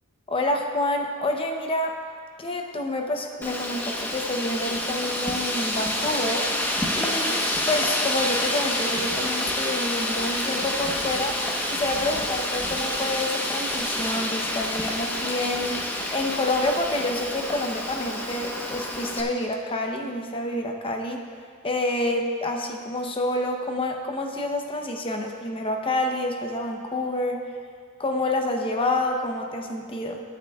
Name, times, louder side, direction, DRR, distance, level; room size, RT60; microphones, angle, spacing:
voice 1, 0.3-2.0 2.4-6.5 6.9-21.2 21.6-27.4 28.0-30.2, left 1 dB, 25° left, 2 dB, 0.8 m, -28 dB
Wind, 3.4-19.2, left 1 dB, 10° left, 1.1 m, -28 dB
19.0 x 8.6 x 2.4 m, 2.1 s
head